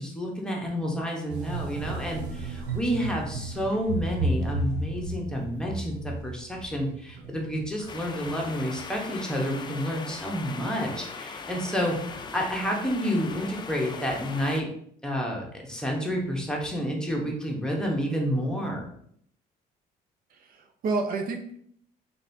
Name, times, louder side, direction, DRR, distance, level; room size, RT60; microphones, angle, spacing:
voice 1, 0.0-14.7 15.0-18.9, equal, 5° left, -1 dB, 1.0 m, -30 dB
sound 1, 1.3-8.8, right 2 dB, 85° right, 0.8 m, -33 dB
sound 2, 7.9-14.6, left 5 dB, 25° left, 0.4 m, -39 dB
voice 2, 20.3-21.6, right 3 dB, 60° right, 4 dB, 0.5 m, -30 dB
4.0 x 3.4 x 2.7 m, 0.66 s
cardioid pair, 110°, 17 cm